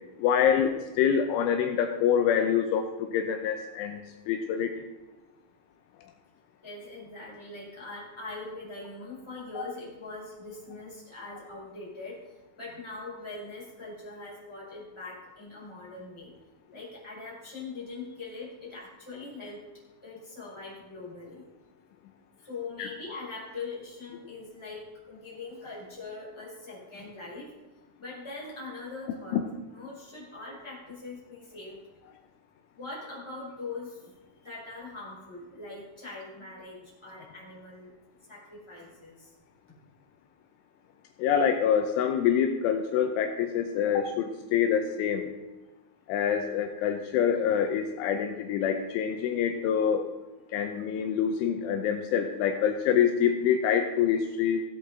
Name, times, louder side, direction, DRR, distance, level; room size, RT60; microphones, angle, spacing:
voice 1, 0.2-4.8 9.6-9.7 22.8-22.9 29.3-29.4 41.2-45.3 46.1-50.1 50.5-54.6, left 8 dB, 80° left, 5 dB, 3.0 m, -26 dB
voice 2, 6.6-12.2 12.6-16.3 16.7-19.6 20.0-21.4 22.4-27.5 28.0-29.4 29.7-31.8 32.8-34.1 34.4-37.9 38.3-39.3, left 3 dB, 5° left, -6 dB, 3.7 m, -42 dB
16.0 x 8.2 x 3.7 m, 1.2 s
omnidirectional pair, 5.7 m